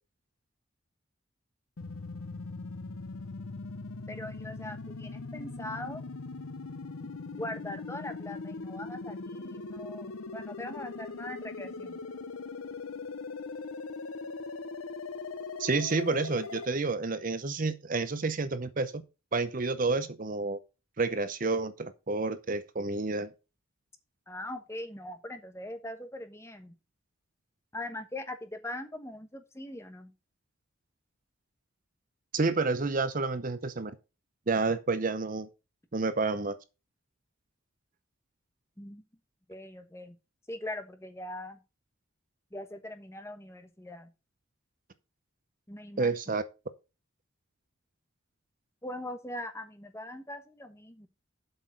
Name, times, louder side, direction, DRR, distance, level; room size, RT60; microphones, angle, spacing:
sound 1, 1.8-16.7, left 3 dB, 85° left, 0.8 m, -40 dB
voice 1, 4.1-6.0 7.3-12.0 24.3-26.7 27.7-30.1 38.8-39.0 39.5-40.2 40.5-41.6 42.5-44.1 45.7-46.3 48.8-51.1, left 1 dB, 15° left, 1.2 m, -41 dB
voice 2, 15.6-19.0 19.3-20.6 21.0-23.3 32.3-33.9 34.5-35.5 35.9-36.6 46.0-46.4, right 3 dB, 40° right, 0.7 m, -29 dB
8.0 x 6.0 x 6.4 m
head